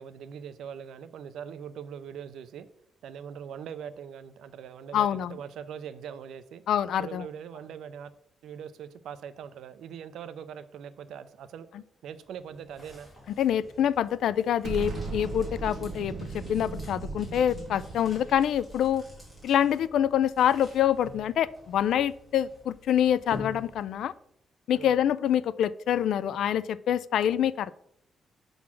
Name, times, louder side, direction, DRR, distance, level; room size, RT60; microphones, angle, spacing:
voice 1, 0.0-2.7 3.0-6.6 7.0-8.1 8.4-11.7 12.0-13.1 24.7-25.0, right 8 dB, 85° right, 13 dB, 0.5 m, -41 dB
voice 2, 4.9-5.4 6.7-7.2 13.4-19.0 19.4-24.1 24.7-27.7, left 10 dB, 75° left, 17 dB, 0.3 m, -26 dB
sound 1, 12.1-24.2, left 2 dB, ahead, 2.5 m, -49 dB
Explosion, 14.6-19.8, right 3 dB, 45° right, 0.9 m, -38 dB
6.1 x 3.8 x 5.9 m, 0.71 s
wide cardioid pair, 175°, 0 cm